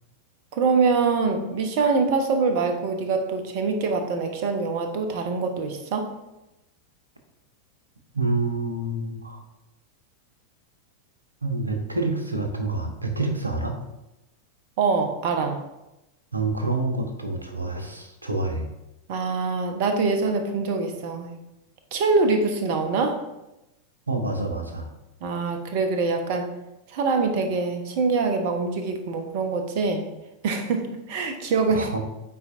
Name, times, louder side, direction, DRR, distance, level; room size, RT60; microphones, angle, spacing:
voice 1, 0.5-6.1 14.8-15.6 19.1-21.3 21.9-23.2 25.2-26.5 26.9-30.1 30.4-31.9, right 4 dB, 50° right, 6 dB, 0.9 m, -24 dB
voice 2, 8.1-9.4 11.4-13.8 16.3-18.7 24.1-24.9 31.7-32.0, right 2 dB, 80° right, 4 dB, 0.9 m, -27 dB
8.1 x 4.5 x 2.5 m, 0.94 s
figure-of-eight pair, 90°, 0 cm